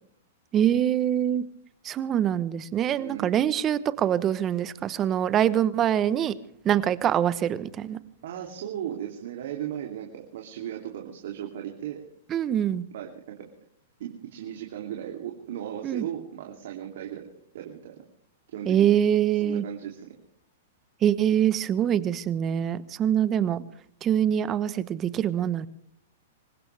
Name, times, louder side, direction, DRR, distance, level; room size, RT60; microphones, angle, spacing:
voice 1, 0.5-1.4 1.8-6.3 6.6-8.0 12.3-12.8 15.8-16.0 18.7-19.6 21.0-23.6 24.0-25.7, right 10 dB, 25° right, 16 dB, 1.0 m, -24 dB
voice 2, 3.0-3.4 8.2-12.0 12.9-13.1 13.4-13.5 14.0-17.3 17.5-18.0 18.5-19.0 19.3-20.1, right 10 dB, 70° right, 1 dB, 2.9 m, -36 dB
25.5 x 16.0 x 3.4 m, 0.66 s
hypercardioid pair, 135°, 0 cm